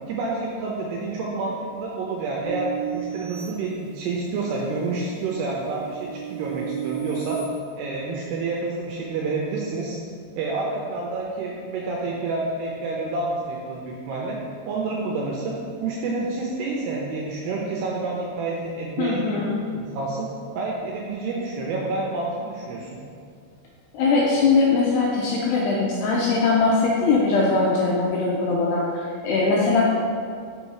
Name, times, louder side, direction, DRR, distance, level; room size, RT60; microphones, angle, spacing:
voice 1, 0.1-2.7 2.9-7.4 7.8-10.0 10.4-14.4 14.7-20.3 20.6-22.9, right 3 dB, 85° right, -2 dB, 2.4 m, -29 dB
sound 1, 2.4-4.4 4.9-7.4, right 9 dB, 45° left, 2.1 m, -34 dB
voice 2, 19.0-19.6 23.9-29.8, left 3 dB, 90° left, -4 dB, 2.4 m, -21 dB
6.4 x 5.5 x 4.8 m, 2.2 s
omnidirectional pair, 5.5 m